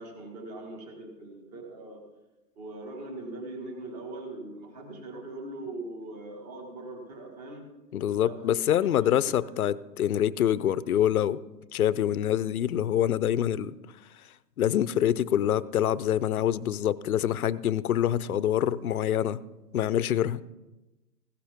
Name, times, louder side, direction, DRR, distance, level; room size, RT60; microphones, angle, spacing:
voice 1, 0.0-2.0 2.6-7.7 8.2-9.5, right 2 dB, 25° right, 3 dB, 1.7 m, -41 dB
voice 2, 7.9-11.4 11.7-13.7 14.6-19.4 19.7-20.4, left 10 dB, 60° left, 18 dB, 0.6 m, -25 dB
16.0 x 11.5 x 3.5 m, 1.1 s
hypercardioid pair, 160°, 49 cm